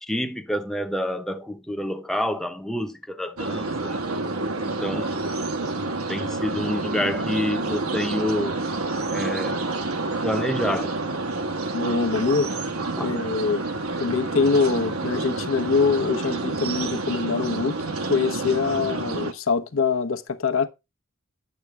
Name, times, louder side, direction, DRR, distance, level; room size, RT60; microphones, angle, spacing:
voice 1, 0.0-4.0 4.6-5.3 6.1-8.6 9.1-9.6 10.2-11.0 13.0-13.1, left 1 dB, ahead, 0.8 m, -28 dB
sound 1, 3.4-19.3, right 3 dB, 90° right, 1.3 m, -28 dB
voice 2, 11.7-12.5 13.0-13.6 14.0-17.8 18.1-20.7, left 4 dB, 70° left, 0.9 m, -24 dB
11.0 x 8.2 x 3.3 m
head